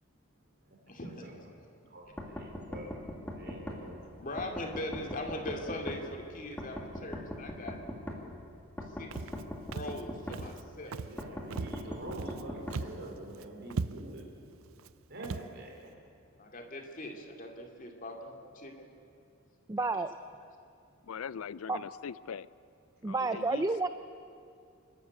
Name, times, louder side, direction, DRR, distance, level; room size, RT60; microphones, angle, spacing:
voice 1, 0.4-1.3 1.8-4.1 10.9-14.3 15.1-15.9 23.2-23.6, right 1 dB, 55° right, 4.4 m, -46 dB
sound 1, 2.2-3.8 4.4-6.0 6.6-8.2 8.8-10.4 11.2-12.8, left 1 dB, 10° left, 2.3 m, -40 dB
voice 2, 4.2-7.8 8.9-9.1 9.7-11.0 16.3-18.9 19.8-19.9, left 1 dB, 40° left, 2.5 m, -40 dB
Walk footsteps, 9.1-9.4 9.7-10.0 10.3-10.6 10.9-11.2 11.5-12.4 12.7-13.1 13.3-13.4 13.7-14.2 14.8-14.9 15.2-15.5, right 4 dB, 75° right, 0.5 m, -38 dB
voice 3, 19.7-20.1 21.7-21.8 23.0-23.9, right 3 dB, 15° right, 0.5 m, -30 dB
voice 4, 21.0-22.5 23.1-23.7, left 7 dB, 85° left, 0.4 m, -41 dB
28.0 x 13.0 x 8.4 m
head